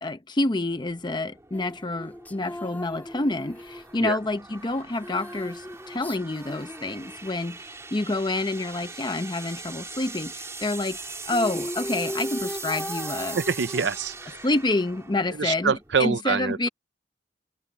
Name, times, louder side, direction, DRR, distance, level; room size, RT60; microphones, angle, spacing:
voice 1, 0.0-11.0 11.3-13.4 14.4-16.7, left 2 dB, 25° left, 0.7 m, -28 dB
sound 1, 0.6-16.0, right 4 dB, 15° right, 2.7 m, -41 dB
sound 2, 1.5-7.7 10.9-11.0 11.2-14.4, left 1 dB, 10° left, 2.0 m, -38 dB
voice 2, 13.3-14.4 15.4-16.7, right 5 dB, 70° right, 0.6 m, -25 dB
head